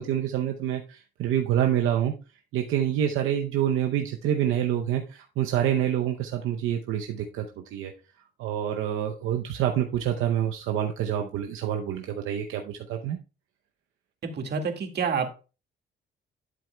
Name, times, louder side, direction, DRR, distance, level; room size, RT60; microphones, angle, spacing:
voice 1, 0.0-2.1 2.5-7.9 8.4-13.2, right 10 dB, 85° right, 4 dB, 0.7 m, -27 dB
voice 2, 14.2-15.3, right 5 dB, 55° right, 4 dB, 1.9 m, -28 dB
11.5 x 7.6 x 2.2 m, 0.32 s
cardioid pair, 90°, 20 cm